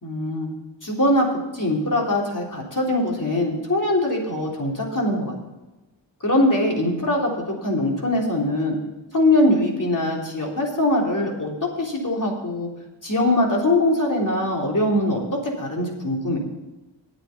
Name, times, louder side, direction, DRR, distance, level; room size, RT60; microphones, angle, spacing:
voice 1, 0.0-0.5 0.8-1.3 1.5-5.3 6.2-7.3 7.6-8.8 9.1-11.5 11.8-12.7 13.0-16.4, left 1 dB, 45° left, -1 dB, 3.6 m, -22 dB
9.3 x 8.6 x 7.1 m, 1.1 s
cardioid pair, 50°, 45 cm